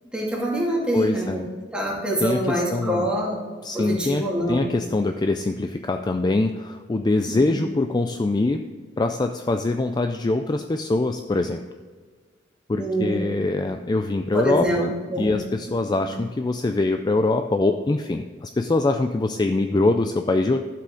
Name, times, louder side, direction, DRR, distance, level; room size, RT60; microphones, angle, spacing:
voice 1, 0.1-1.4 1.7-3.4 3.7-4.7 7.3-7.5 12.7-13.2 14.3-14.8 15.1-15.4 15.9-16.0, right 1 dB, 5° right, -4 dB, 2.4 m, -25 dB
voice 2, 0.9-1.5 2.2-3.1 3.6-8.6 9.0-11.6 12.7-20.6, left 2 dB, 25° left, 6 dB, 0.4 m, -23 dB
12.0 x 7.6 x 3.8 m, 1.5 s
head